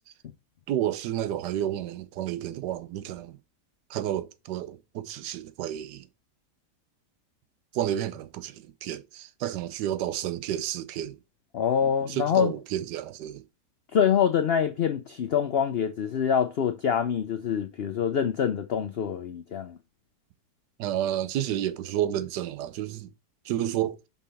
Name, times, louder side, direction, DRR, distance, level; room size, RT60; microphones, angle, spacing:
voice 1, 0.7-3.4 3.9-6.1 7.7-11.2 11.8-13.4 20.8-23.1 23.5-24.0, right 11 dB, 85° right, 1.3 m, -31 dB
voice 2, 11.5-12.5 13.9-19.8, left 8 dB, 65° left, 0.6 m, -25 dB
5.6 x 5.1 x 4.2 m
omnidirectional pair, 1.8 m